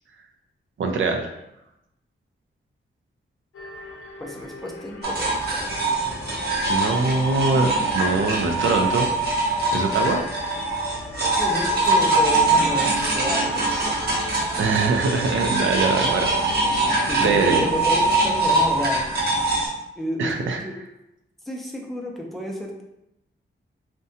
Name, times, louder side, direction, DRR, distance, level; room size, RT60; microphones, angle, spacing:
voice 1, 0.8-1.3 6.7-9.1 9.7-10.2 14.6-16.6 17.2-17.6 20.2-20.6, right 3 dB, 75° right, 4 dB, 0.4 m, -23 dB
sound 1, 3.5-19.3, left 3 dB, 90° left, 0.5 m, -39 dB
voice 2, 4.2-6.0 11.4-14.0 14.3-15.0 17.1-19.0 20.0-20.8 21.4-22.8, equal, ahead, -1 dB, 0.4 m, -32 dB
sound 2, 5.0-19.7, right 2 dB, 50° right, 0.8 m, -23 dB
2.6 x 2.1 x 2.6 m, 0.87 s
wide cardioid pair, 110°, 21 cm